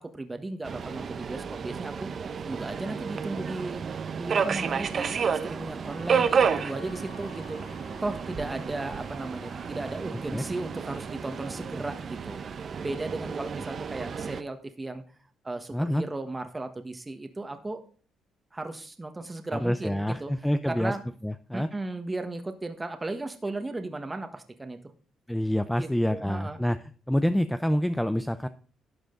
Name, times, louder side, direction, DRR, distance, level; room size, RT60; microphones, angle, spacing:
voice 1, 0.0-2.1 2.5-3.8 4.1-5.1 5.4-7.7 8.0-12.4 12.8-15.0 15.4-17.8 18.5-21.0 21.5-24.8 25.7-26.6, right 2 dB, 20° right, 7 dB, 1.4 m, -35 dB
Subway metro underground, 0.6-14.4, right 6 dB, 50° right, 1.0 m, -31 dB
Wind instrument woodwind instrument, 5.8-10.0, left 4 dB, 70° left, 4.9 m, -51 dB
voice 2, 10.1-10.4 15.7-16.0 19.5-20.9 21.2-21.7 25.3-26.8 27.1-28.5, equal, 5° left, 10 dB, 0.6 m, -27 dB
12.0 x 7.8 x 3.9 m, 0.41 s
cardioid pair, 90°, 0 cm